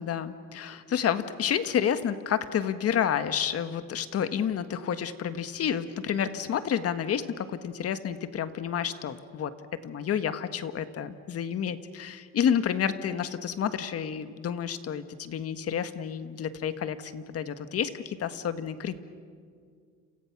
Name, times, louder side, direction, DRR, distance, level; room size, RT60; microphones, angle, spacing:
voice 1, 0.0-9.5 9.8-19.0, left 8 dB, 50° left, 11 dB, 1.5 m, -30 dB
30.0 x 28.5 x 6.0 m, 2.1 s
cardioid pair, 120°, 31 cm